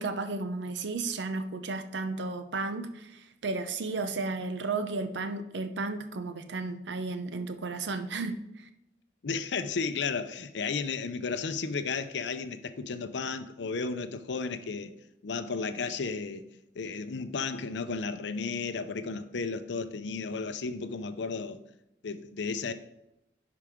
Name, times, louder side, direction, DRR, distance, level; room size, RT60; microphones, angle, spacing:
voice 1, 0.0-8.7, right 3 dB, 75° right, 0.7 m, -33 dB
voice 2, 9.2-14.9 15.2-16.5 16.8-21.6 22.0-22.7, left 4 dB, 75° left, 0.5 m, -33 dB
10.5 x 4.9 x 3.6 m
head